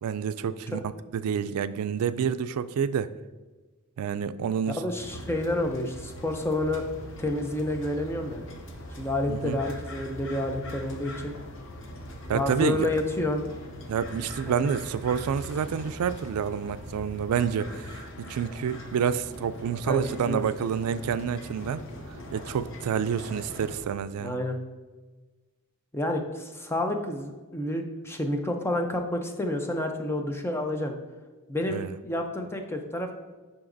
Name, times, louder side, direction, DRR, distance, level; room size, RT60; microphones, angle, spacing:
voice 1, 0.0-0.8 1.1-3.1 4.0-4.8 9.3-9.6 12.3-12.9 13.9-21.8 22.3-24.4 31.7-31.9, right 7 dB, 90° right, 14 dB, 0.3 m, -28 dB
voice 2, 4.8-6.9 7.2-8.4 9.0-11.3 12.3-13.5 14.5-14.7 19.9-20.4 24.1-24.6 25.9-31.0 31.5-33.1, left 1 dB, 10° left, 4 dB, 0.5 m, -29 dB
sound 1, 5.0-23.8, left 1 dB, 60° left, 0.8 m, -41 dB
10.5 x 3.9 x 2.6 m, 1.3 s
head